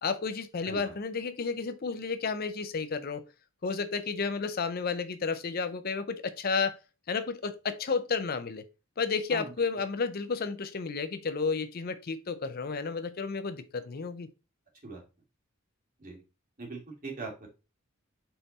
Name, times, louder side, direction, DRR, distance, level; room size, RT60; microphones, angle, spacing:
voice 1, 0.0-3.2 3.6-6.8 7.1-8.6 9.0-14.3, left 5 dB, 45° left, 0.5 m, -32 dB
voice 2, 0.6-0.9 9.3-9.5 14.8-15.0 16.0-16.2 16.6-17.5, right 3 dB, 40° right, 2.4 m, -40 dB
5.5 x 4.1 x 4.1 m
head